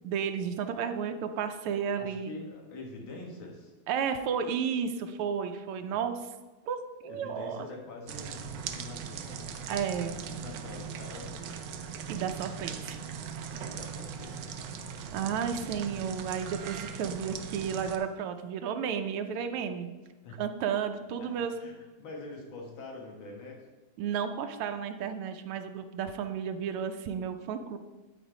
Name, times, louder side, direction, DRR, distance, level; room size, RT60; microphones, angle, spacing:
voice 1, 0.0-2.3 3.9-6.3 6.7-7.7 9.7-10.2 12.1-13.0 15.1-19.9 20.4-21.5 24.0-27.8, right 7 dB, 85° right, 7 dB, 1.6 m, -32 dB
voice 2, 2.0-3.7 7.1-9.6 10.1-11.6 12.8-14.5 20.2-20.4 21.2-21.3 21.6-23.7, left 2 dB, 65° left, 0 dB, 2.3 m, -45 dB
sound 1, 8.1-18.0, right 6 dB, 70° right, 1.1 m, -40 dB
10.0 x 4.3 x 5.0 m, 1.3 s
omnidirectional pair, 2.4 m